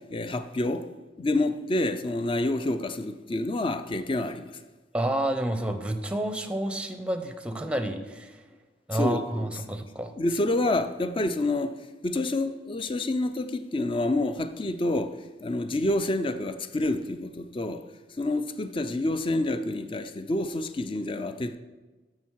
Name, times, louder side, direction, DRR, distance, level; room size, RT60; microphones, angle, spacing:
voice 1, 0.1-0.9 1.2-4.6 8.9-9.5 10.2-11.7 12.0-17.8 18.2-21.6, left 2 dB, 30° left, 0.5 m, -28 dB
voice 2, 4.9-8.4 8.9-10.1, right 1 dB, 5° right, 0.7 m, -29 dB
13.0 x 6.2 x 4.7 m
head